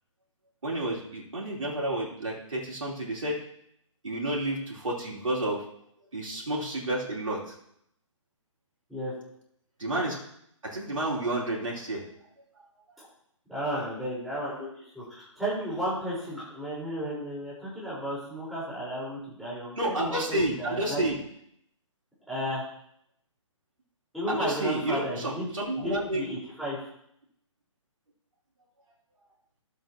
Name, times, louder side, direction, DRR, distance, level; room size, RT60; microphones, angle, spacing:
voice 1, 0.6-3.4 4.0-5.6 6.1-7.5 9.8-10.2 10.6-12.0 19.8-21.2 24.3-26.2, right 1 dB, 75° right, -4 dB, 3.0 m, -30 dB
voice 2, 13.5-21.0 22.3-22.6 24.1-25.5 25.7-26.8, equal, ahead, -9 dB, 4.4 m, -33 dB
13.0 x 7.7 x 2.9 m, 0.71 s
figure-of-eight pair, 140°, 17 cm